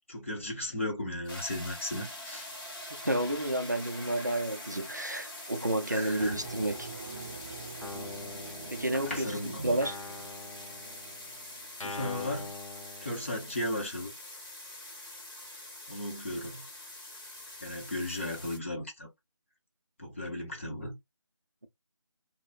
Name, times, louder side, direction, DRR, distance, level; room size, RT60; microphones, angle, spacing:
voice 1, 0.1-2.5 4.2-4.3 5.9-6.4 8.9-9.8 11.8-12.5 13.0-14.1 15.9-16.6 17.6-19.1 20.0-21.0, left 1 dB, 25° left, 0.7 m, -36 dB
sound 1, 1.3-18.6, left 1 dB, 40° left, 1.0 m, -44 dB
voice 2, 3.0-6.9 8.7-9.3 9.6-10.0, right 1 dB, 35° right, 0.4 m, -30 dB
sound 2, 6.2-11.7, right 4 dB, 5° right, 0.7 m, -46 dB
Guitar, 7.8-9.3 9.8-13.7, left 3 dB, 80° left, 0.6 m, -44 dB
2.8 x 2.0 x 2.9 m
figure-of-eight pair, 165°, 16 cm